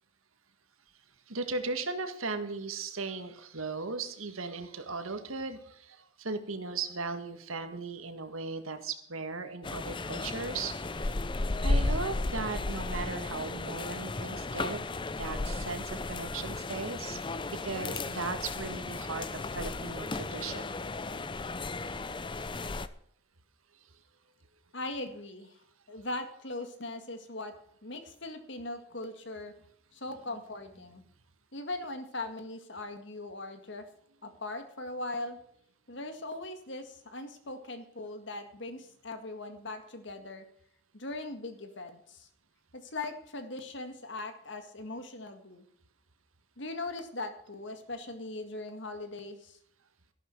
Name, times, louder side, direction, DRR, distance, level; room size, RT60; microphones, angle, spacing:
voice 1, 1.3-11.1 11.6-14.8 15.2-17.2 17.6-20.7, right 4 dB, 85° right, 8 dB, 1.7 m, -37 dB
sound 1, 9.6-22.9, left 2 dB, 25° left, 0.5 m, -34 dB
voice 2, 24.7-25.5 25.9-27.5 27.8-29.5 29.9-31.0 31.5-33.8 34.2-35.4 35.9-40.4 40.9-42.3 42.7-45.7 46.6-49.6, left 2 dB, 60° left, 7 dB, 1.9 m, -40 dB
13.0 x 12.0 x 4.6 m, 0.68 s
head